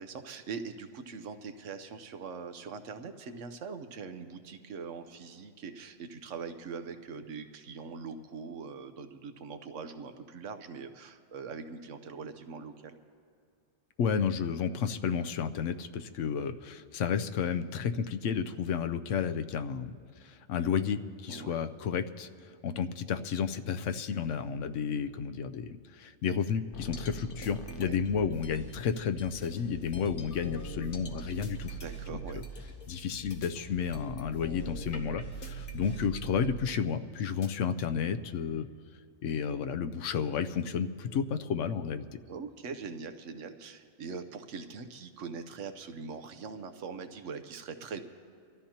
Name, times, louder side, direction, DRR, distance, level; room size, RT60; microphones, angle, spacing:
voice 1, 0.0-13.0 21.3-21.6 27.7-28.0 31.8-32.4 42.3-48.0, right 5 dB, 85° right, 9 dB, 1.2 m, -42 dB
voice 2, 14.0-19.9 20.2-31.8 32.3-32.4 32.9-38.7 39.2-42.1, left 7 dB, 85° left, 9 dB, 1.0 m, -32 dB
sound 1, 26.7-28.7 29.2-37.5, right 3 dB, 50° left, 1.1 m, -42 dB
sound 2, 28.1-36.1, left 3 dB, 20° left, 1.3 m, -51 dB
24.5 x 13.5 x 2.9 m, 2.3 s
omnidirectional pair, 1.2 m